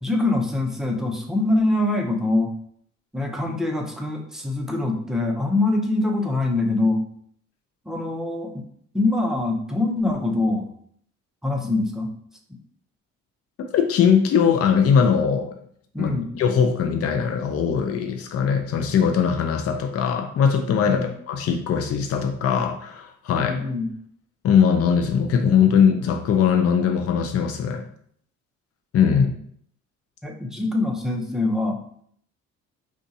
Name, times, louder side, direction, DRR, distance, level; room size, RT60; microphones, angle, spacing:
voice 1, 0.0-2.5 3.1-7.1 7.9-8.6 8.9-10.7 11.4-12.1 15.9-16.3 20.8-21.1 23.3-23.9 29.1-29.4 30.2-31.8, left 2 dB, ahead, 1 dB, 0.6 m, -24 dB
voice 2, 13.7-15.5 16.0-23.6 24.4-27.8 28.9-29.3, left 7 dB, 50° left, 4 dB, 0.5 m, -20 dB
2.6 x 2.5 x 3.9 m, 0.63 s
cardioid pair, 90°, 30 cm